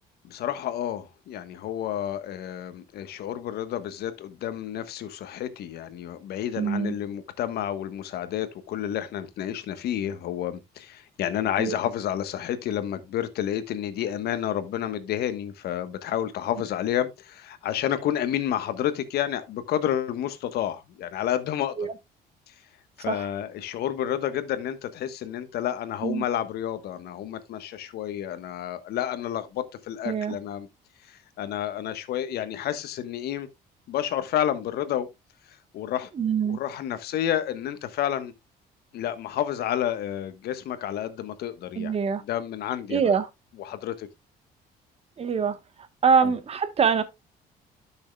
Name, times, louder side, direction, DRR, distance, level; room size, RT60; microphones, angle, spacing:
voice 1, 0.2-21.7 22.5-22.6 23.0-30.7 31.1-33.5 33.9-35.1 35.7-36.1 36.5-38.3 38.9-42.0 42.2-43.1 43.6-44.1 46.2-46.3, left 11 dB, 70° left, 1.3 m, -30 dB
voice 2, 6.6-6.9 11.6-11.8 21.8-21.9 23.1-23.3 26.0-26.2 30.0-30.4 36.2-36.6 41.8-42.2 42.9-43.3 45.2-45.6 46.0-47.0, right 6 dB, 35° right, 1.2 m, -24 dB
12.0 x 6.4 x 2.3 m
cardioid pair, 110°, 17 cm